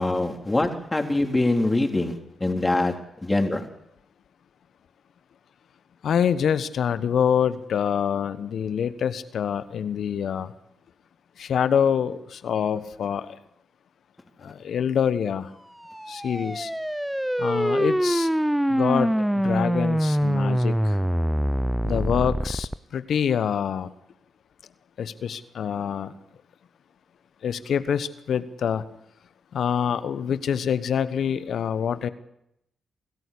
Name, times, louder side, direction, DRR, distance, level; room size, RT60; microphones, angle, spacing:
voice 1, 0.0-3.7, left 2 dB, 20° left, 3 dB, 3.7 m, -24 dB
voice 2, 6.0-10.5 11.4-13.3 14.4-15.5 16.1-16.7 17.4-18.3 18.7-21.0 21.8-23.9 25.0-26.1 27.4-28.8 29.5-32.1, left 8 dB, 65° left, 14 dB, 1.1 m, -26 dB
sound 1, 15.8-22.8, equal, 5° right, 0.8 m, -24 dB
27.0 x 14.0 x 8.5 m, 0.82 s
hypercardioid pair, 40°, 0 cm